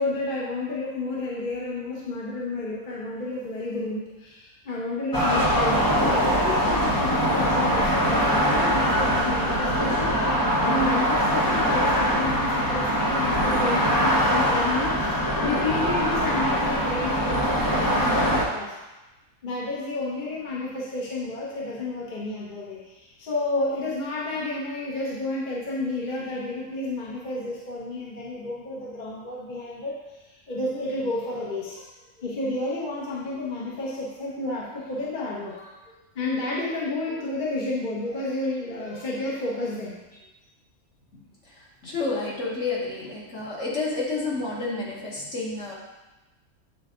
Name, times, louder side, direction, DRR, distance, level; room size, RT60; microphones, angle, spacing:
voice 1, 0.0-18.7 19.4-30.0 30.3-31.9 32.2-39.9, left 2 dB, 40° left, -5 dB, 1.0 m, -31 dB
sound 1, 5.1-18.4, equal, 20° left, 0.6 m, -22 dB
voice 2, 41.1-45.7, left 3 dB, 55° left, -5 dB, 1.8 m, -30 dB
8.3 x 3.4 x 3.7 m, 1.1 s
omnidirectional pair, 1.5 m